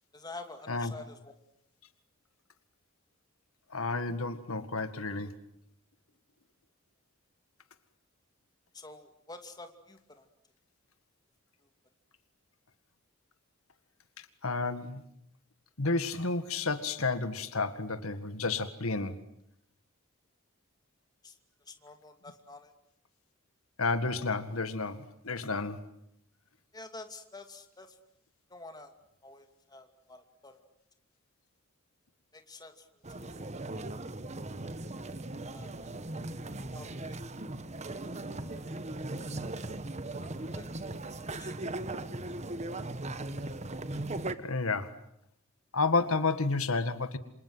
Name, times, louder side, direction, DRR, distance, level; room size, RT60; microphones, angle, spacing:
voice 1, 0.1-1.3 8.7-10.3 21.2-22.7 26.7-28.0 28.5-28.9 29.2-30.6 32.3-32.9 35.5-35.7 36.7-36.9 38.3-38.9 39.7-39.8 40.4-40.7 41.3-41.5, left 2 dB, 20° left, 6 dB, 2.6 m, -48 dB
voice 2, 3.7-5.3 14.4-15.0 15.8-19.2 23.8-25.8 44.4-44.9 45.7-47.2, left 3 dB, 80° left, 11 dB, 1.9 m, -31 dB
sound 1, 33.0-44.3, right 2 dB, 30° right, 1.3 m, -38 dB
28.0 x 27.0 x 7.8 m, 0.74 s
head